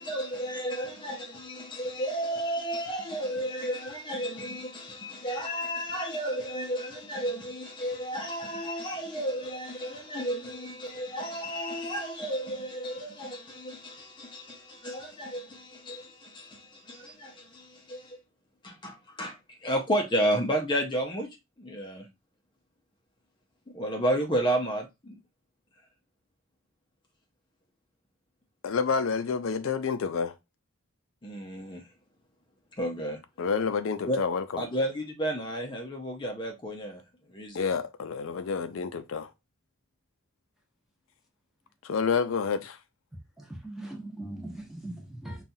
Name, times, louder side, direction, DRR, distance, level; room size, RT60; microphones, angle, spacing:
voice 1, 0.0-18.2 18.6-22.1 23.7-25.2 31.2-31.9 32.8-33.2 34.0-34.2 34.6-37.6, equal, 25° left, 0.6 m, -32 dB
voice 2, 28.6-30.3 33.4-34.4 37.5-39.3 41.8-42.8, left 5 dB, 75° left, 0.4 m, -29 dB
voice 3, 43.4-45.4, right 1 dB, ahead, 1.0 m, -40 dB
5.5 x 2.3 x 2.6 m
head